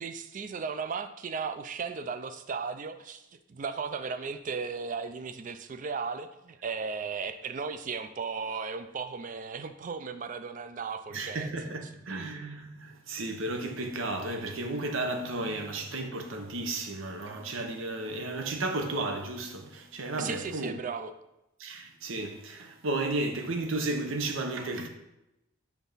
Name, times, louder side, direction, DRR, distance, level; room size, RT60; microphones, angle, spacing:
voice 1, 0.0-11.5 12.1-12.2 20.2-21.1, right 5 dB, 40° right, 0.4 m, -36 dB
voice 2, 11.1-20.8 21.6-24.9, right 2 dB, 75° right, 0.8 m, -33 dB
5.9 x 3.5 x 5.5 m
head